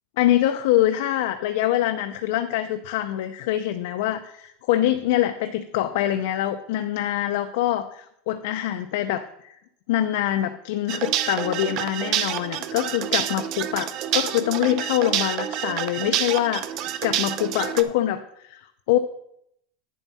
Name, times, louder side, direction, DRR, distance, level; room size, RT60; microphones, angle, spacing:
voice 1, 0.2-9.6 9.9-19.0, left 13 dB, 70° left, 7 dB, 0.5 m, -24 dB
sound 1, 10.9-17.8, right 11 dB, 40° right, 0.5 m, -28 dB
9.2 x 7.2 x 4.1 m, 0.76 s
supercardioid pair, 155°, 0 cm